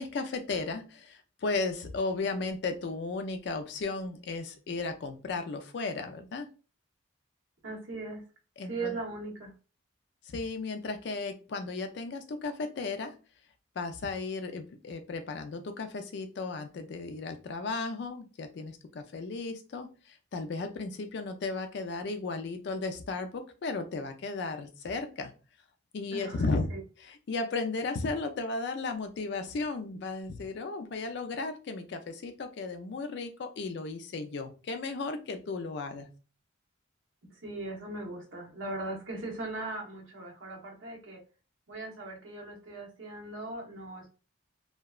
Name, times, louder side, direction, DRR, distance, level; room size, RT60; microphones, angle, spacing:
voice 1, 0.0-6.5 8.6-9.0 10.2-13.2 13.8-25.3 25.9-26.7 27.0-36.1, left 3 dB, 55° left, 7 dB, 0.3 m, -35 dB
voice 2, 7.6-8.2 8.7-9.5 26.1-26.8 37.3-41.2 41.7-44.1, right 2 dB, 75° right, -1 dB, 0.9 m, -39 dB
2.7 x 2.1 x 2.3 m, 0.35 s
head